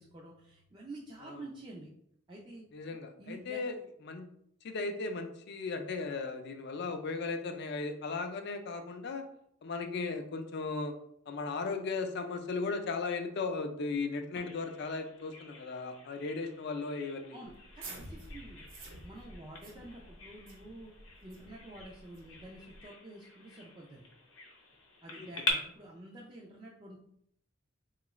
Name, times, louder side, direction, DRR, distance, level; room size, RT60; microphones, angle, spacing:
voice 1, 0.0-1.9 2.3-2.6 3.2-3.6 17.3-18.7 19.0-20.9 21.2-24.1 25.0-27.0, right 1 dB, 25° right, -3 dB, 0.4 m, -49 dB
voice 2, 2.7-3.8 4.0-4.3 4.6-9.2 9.6-10.9 11.3-17.4 25.2-25.3, left 4 dB, 55° left, 6 dB, 0.4 m, -36 dB
Bird vocalization bird call bird song, 14.4-25.5, left 3 dB, 75° left, 0.8 m, -44 dB
sound 1, 17.5-22.8, right 2 dB, 70° right, 0.9 m, -50 dB
3.6 x 2.4 x 3.0 m, 0.72 s
head